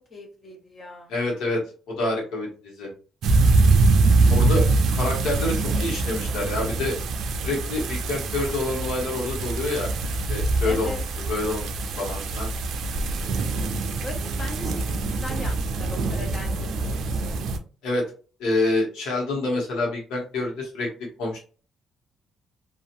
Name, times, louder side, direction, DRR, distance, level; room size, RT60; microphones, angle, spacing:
voice 1, 0.0-1.1 4.2-4.7 10.6-11.0 14.0-17.4, left 1 dB, 45° left, 1 dB, 0.7 m, -39 dB
voice 2, 1.1-2.9 4.3-4.7 5.0-6.9 7.4-9.9 10.3-11.7 12.0-12.5 17.8-18.1 18.4-20.9 21.2-21.4, left 2 dB, 90° left, -1 dB, 1.1 m, -27 dB
sound 1, 3.2-17.6, right 3 dB, 75° right, 0.4 m, -24 dB
2.8 x 2.4 x 2.5 m, 0.38 s
cardioid pair, 90°, 0 cm